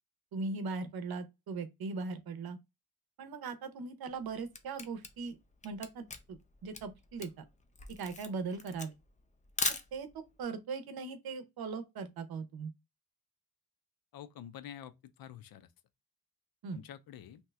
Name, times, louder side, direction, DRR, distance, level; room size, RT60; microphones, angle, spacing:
voice 1, 0.3-2.6 3.2-5.4 5.6-7.5 7.9-8.9 9.9-10.1 10.4-12.7 16.6-16.8, right 4 dB, 85° right, 0.7 m, -39 dB
Camera, 4.1-10.3, left 4 dB, 20° left, 0.4 m, -39 dB
voice 2, 14.1-15.7 16.7-17.4, left 10 dB, 75° left, 0.5 m, -48 dB
2.9 x 2.3 x 3.2 m
wide cardioid pair, 135°, 36 cm